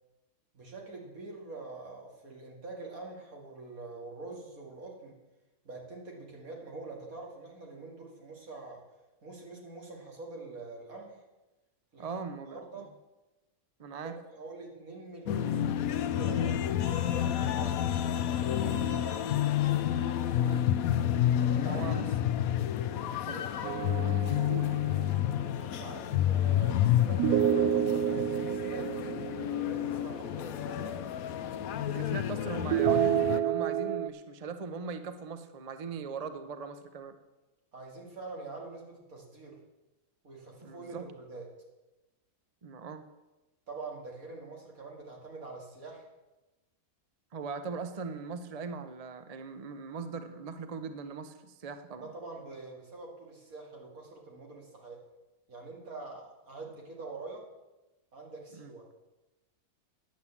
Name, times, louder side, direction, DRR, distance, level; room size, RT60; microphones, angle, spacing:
voice 1, 0.5-5.2 5.6-8.8 9.2-11.2 11.9-12.2 12.5-12.9 14.0-16.6 17.1-17.9 18.5-19.3 21.4-21.9 23.3-23.5 25.6-29.1 29.5-31.0 37.7-39.6 40.2-41.5 43.7-46.1 52.0-55.0 55.5-57.5 58.1-58.9, right 3 dB, 65° right, 0 dB, 2.6 m, -45 dB
voice 2, 12.0-12.9 13.8-14.2 20.4-20.7 21.6-22.1 23.3-23.4 24.5-24.8 31.9-37.2 40.6-41.1 42.6-43.0 47.3-52.1 58.5-58.7, right 5 dB, 40° right, 9 dB, 0.6 m, -40 dB
sound 1, 15.3-33.4, left 11 dB, 75° left, 1.0 m, -29 dB
sound 2, 23.6-25.2 27.2-30.3 32.7-34.1, right 11 dB, 85° right, 1.1 m, -29 dB
10.5 x 8.4 x 7.2 m, 1.1 s
omnidirectional pair, 1.6 m